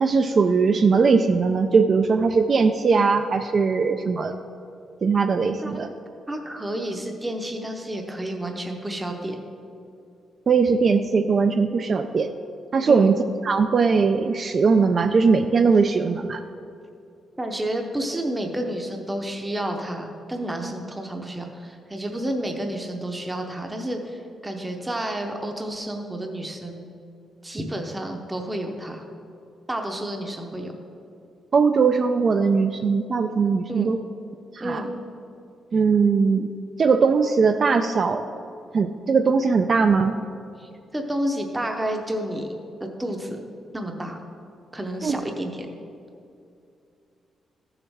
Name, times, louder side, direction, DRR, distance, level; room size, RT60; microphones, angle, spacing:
voice 1, 0.0-4.3 5.0-5.9 10.5-12.3 12.7-13.2 13.4-16.4 31.5-34.0 34.5-34.8 35.7-36.5 36.8-38.2 38.7-40.2 45.0-45.2, right 5 dB, 35° right, 7 dB, 0.3 m, -20 dB
voice 2, 6.3-9.4 12.8-13.2 17.4-26.9 27.4-29.0 29.7-30.7 33.7-33.9 34.6-34.9 40.6-42.5 43.0-43.4 43.7-44.2 44.7-45.7, right 1 dB, 10° right, 3 dB, 0.7 m, -30 dB
14.5 x 7.1 x 3.5 m, 2.5 s
wide cardioid pair, 175°, 0 cm